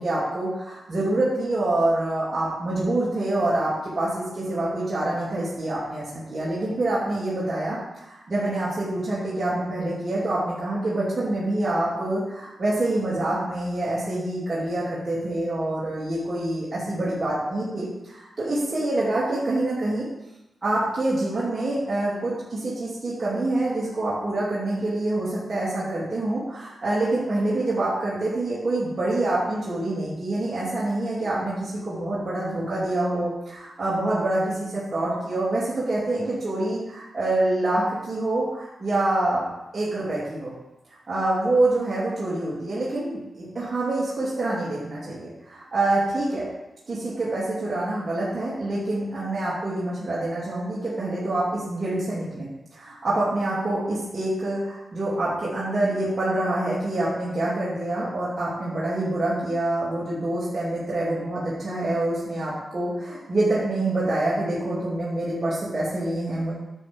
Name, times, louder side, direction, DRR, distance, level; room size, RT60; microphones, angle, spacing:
voice 1, 0.0-20.1 20.6-39.4 39.7-40.5 41.1-46.5 46.9-66.5, right 2 dB, 35° right, -9 dB, 3.0 m, -26 dB
10.5 x 6.4 x 3.7 m, 0.93 s
cardioid pair, 90°, 0 cm